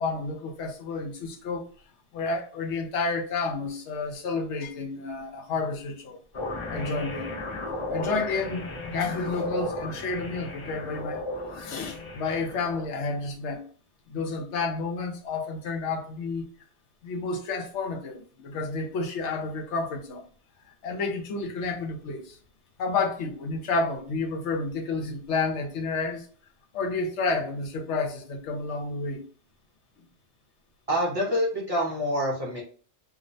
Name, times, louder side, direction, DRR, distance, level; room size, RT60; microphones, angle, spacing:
voice 1, 0.0-1.7 2.1-6.2 6.7-7.3 7.9-11.2 11.5-13.6 14.1-16.5 17.0-20.2 20.8-22.4 22.8-26.3 26.7-29.2, left 3 dB, 80° left, 0.9 m, -30 dB
sound 1, 6.3-12.9, left 2 dB, 50° left, 0.3 m, -35 dB
voice 2, 30.9-32.6, equal, 40° right, 0.5 m, -26 dB
2.4 x 2.1 x 2.5 m
omnidirectional pair, 1.2 m